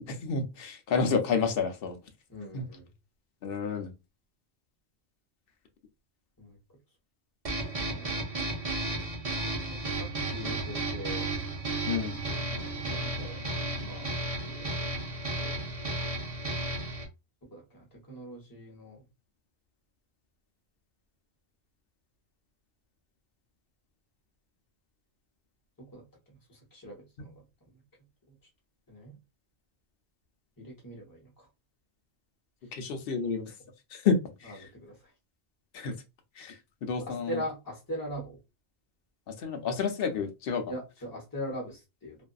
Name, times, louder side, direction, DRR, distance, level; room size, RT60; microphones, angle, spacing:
voice 1, 0.0-2.0 2.5-2.6 3.4-3.9 11.9-12.2 32.7-33.4 33.9-34.2 35.7-35.9 36.4-36.5 36.8-37.4 39.4-40.6, left 5 dB, 60° left, 0.8 m, -29 dB
voice 2, 2.3-2.9 6.4-6.6 7.8-8.1 9.7-11.3 12.5-13.4 13.8-14.1 14.4-15.0 15.4-15.7 17.5-19.1 25.8-27.3 28.3-28.4 28.9-29.1 30.6-31.3 34.4-35.0 37.1-38.4 40.7-42.2, equal, 20° left, 0.9 m, -41 dB
sound 1, 7.4-17.0, right 2 dB, 40° right, 0.7 m, -33 dB
2.6 x 2.5 x 2.3 m
omnidirectional pair, 1.1 m